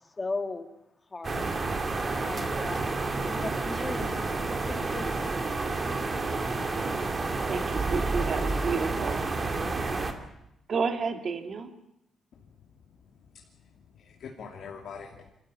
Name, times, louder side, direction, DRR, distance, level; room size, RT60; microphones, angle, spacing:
voice 1, 0.2-0.7 1.1-1.5 2.2-2.9 3.3-5.1, left 3 dB, 20° left, 6 dB, 2.0 m, -37 dB
sound 1, 1.2-10.1, right 3 dB, 25° right, 2.3 m, -30 dB
voice 2, 7.5-9.2 10.7-11.7, right 5 dB, 45° right, 6 dB, 2.4 m, -31 dB
voice 3, 13.0-13.4 13.9-15.3, left 6 dB, 60° left, -1 dB, 2.7 m, -44 dB
27.0 x 14.0 x 9.9 m, 0.84 s
cardioid pair, 150°, 0 cm